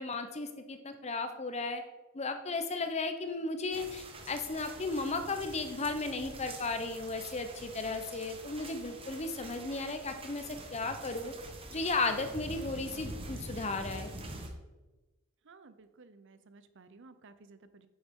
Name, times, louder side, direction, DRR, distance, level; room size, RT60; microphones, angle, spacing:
voice 1, 0.0-1.8 2.1-11.3 11.7-14.1, left 3 dB, 30° left, 8 dB, 0.7 m, -35 dB
sound 1, 3.7-14.5, right 2 dB, 25° right, 1.0 m, -46 dB
voice 2, 15.5-17.9, right 3 dB, 60° right, 12 dB, 0.6 m, -56 dB
9.4 x 7.0 x 3.7 m, 1.2 s
head